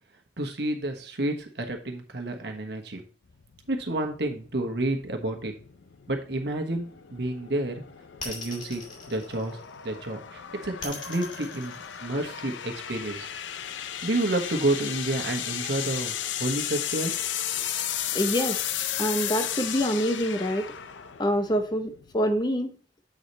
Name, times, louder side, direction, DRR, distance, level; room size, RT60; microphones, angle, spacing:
voice 1, 0.4-3.0 3.7-5.5 6.1-7.8 8.2-8.8 9.1-13.3 14.0-17.1, right 1 dB, 65° right, 4 dB, 1.3 m, -30 dB
sound 1, 3.3-22.4, left 10 dB, 85° left, 0.5 m, -35 dB
sound 2, 8.2-10.0 10.8-12.6, left 3 dB, 45° left, 2.5 m, -40 dB
voice 2, 18.1-18.6 19.0-20.6 21.2-22.8, equal, 25° left, 7 dB, 0.8 m, -26 dB
8.1 x 5.0 x 4.1 m, 0.40 s
head